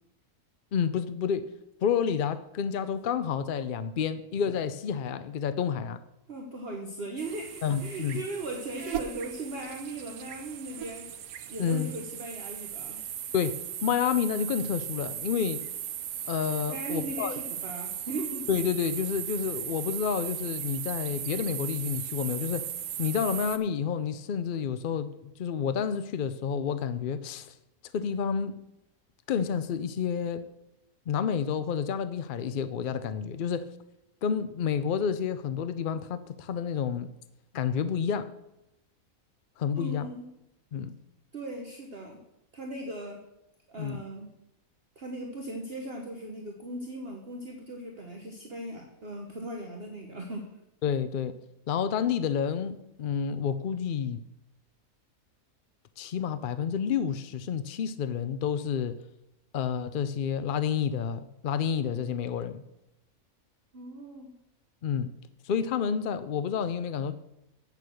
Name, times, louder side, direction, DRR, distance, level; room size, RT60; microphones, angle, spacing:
voice 1, 0.7-1.5 1.8-6.0 7.6-8.2 11.6-11.9 13.3-15.6 16.3-17.4 18.5-22.7 23.0-25.1 25.4-27.6 27.9-28.6 29.3-30.5 31.1-33.7 34.2-37.1 37.5-38.3 39.6-40.1 40.7-41.0 43.8-44.0 50.8-51.4 51.7-54.2 56.0-59.0 59.5-62.6 64.8-65.1 65.4-67.1, left 7 dB, 65° left, 12 dB, 0.5 m, -29 dB
voice 2, 6.3-11.1 11.5-13.0 16.7-18.4 39.7-40.3 41.3-42.2 42.5-43.2 43.7-44.3 45.0-50.5 63.7-64.3, right 2 dB, 45° right, 1 dB, 1.3 m, -38 dB
sound 1, 7.2-23.6, right 10 dB, 80° right, 1.2 m, -37 dB
8.4 x 6.7 x 6.3 m, 0.85 s
omnidirectional pair, 1.5 m